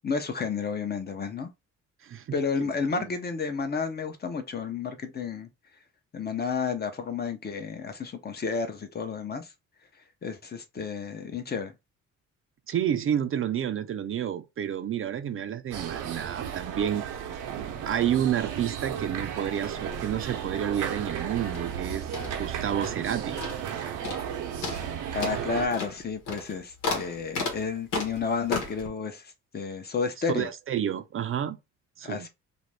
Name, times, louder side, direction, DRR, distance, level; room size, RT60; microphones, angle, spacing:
voice 1, 0.0-1.5 2.3-5.5 6.1-9.5 10.2-11.7 25.1-29.2 29.5-30.5 32.0-32.3, left 5 dB, 35° left, 0.6 m, -31 dB
voice 2, 2.0-2.4 2.6-3.1 12.7-17.0 17.9-22.1 22.4-23.4 30.3-31.6 32.0-32.3, right 9 dB, 45° right, 0.4 m, -30 dB
sound 1, 15.7-25.7, right 9 dB, 80° right, 0.7 m, -34 dB
sound 2, 21.5-23.1 23.4-23.8 24.0-24.3 24.6-28.9, left 4 dB, 85° left, 1.1 m, -34 dB
2.6 x 2.5 x 3.2 m
cardioid pair, 90°, 30 cm